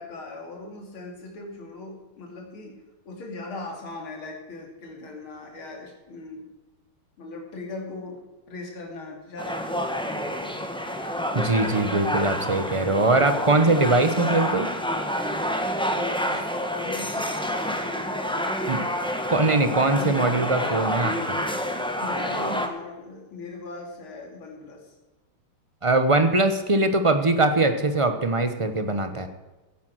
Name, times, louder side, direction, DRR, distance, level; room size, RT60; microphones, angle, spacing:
voice 1, 0.0-6.5 7.2-8.2 8.5-10.7 15.9-18.9 20.0-20.3 22.0-25.0, left 2 dB, 75° left, 0 dB, 3.4 m, -39 dB
sound 1, 9.4-22.7, equal, 5° left, 1.0 m, -28 dB
voice 2, 11.3-14.7 18.7-18.8 19.3-21.4 25.8-29.3, right 2 dB, 35° right, 8 dB, 0.5 m, -21 dB
16.5 x 9.1 x 6.3 m, 1.2 s
omnidirectional pair, 2.3 m